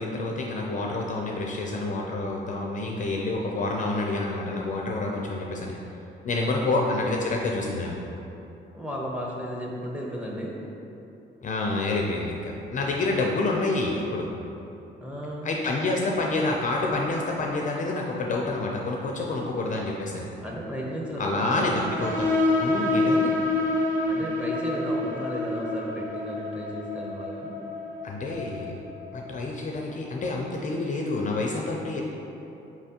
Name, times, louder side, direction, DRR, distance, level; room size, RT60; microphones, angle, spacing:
voice 1, 0.0-5.8 6.2-8.0 11.4-14.3 15.4-20.3 21.2-22.3 22.6-23.3 28.0-28.8 29.1-32.0, left 2 dB, 40° left, -1 dB, 0.4 m, -28 dB
voice 2, 6.4-6.9 8.7-10.6 15.0-15.5 20.4-21.7 24.1-27.5, equal, 5° right, -3 dB, 0.8 m, -34 dB
sound 1, 21.8-29.1, left 2 dB, 40° right, 0.9 m, -27 dB
4.6 x 3.3 x 2.8 m, 2.9 s
cardioid pair, 90°, 20 cm